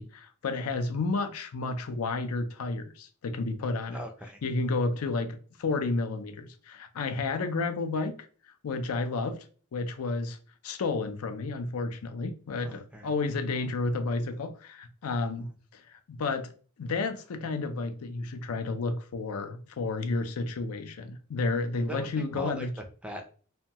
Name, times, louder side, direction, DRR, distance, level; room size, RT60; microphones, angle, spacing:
voice 1, 0.0-4.0 4.4-8.2 8.6-9.5 9.7-10.4 10.6-16.5 16.8-22.7, left 3 dB, 85° left, 0.5 m, -31 dB
voice 2, 3.9-4.4 12.6-13.1 15.3-15.5 21.8-22.1 22.3-23.2, equal, 5° right, 0.3 m, -40 dB
2.8 x 2.2 x 2.8 m
head